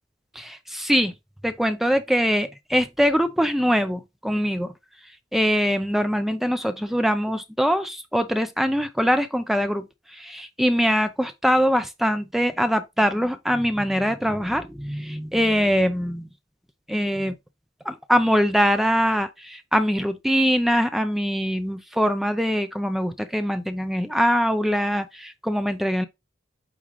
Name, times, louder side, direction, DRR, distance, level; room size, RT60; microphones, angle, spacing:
voice 1, 0.4-1.1 1.4-4.7 5.3-16.3 16.9-17.3 17.8-26.1, equal, ahead, 0.5 m, -23 dB
8.7 x 3.7 x 3.1 m
head